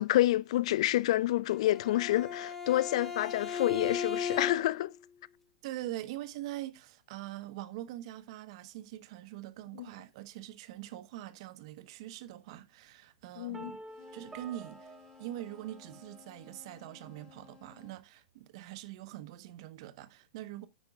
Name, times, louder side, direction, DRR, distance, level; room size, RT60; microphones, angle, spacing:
voice 1, 0.0-4.9 13.4-13.7, left 15 dB, 60° left, 0.4 m, -28 dB
Bowed string instrument, 1.5-4.9, left 6 dB, 10° left, 1.8 m, -36 dB
voice 2, 5.6-13.8 14.1-20.7, right 14 dB, 55° right, 1.0 m, -43 dB
sound 1, 13.5-16.5, right 2 dB, 15° right, 1.3 m, -50 dB
sound 2, 13.9-18.0, left 8 dB, 30° left, 4.8 m, -57 dB
9.3 x 9.1 x 2.4 m
hypercardioid pair, 115°, 4 cm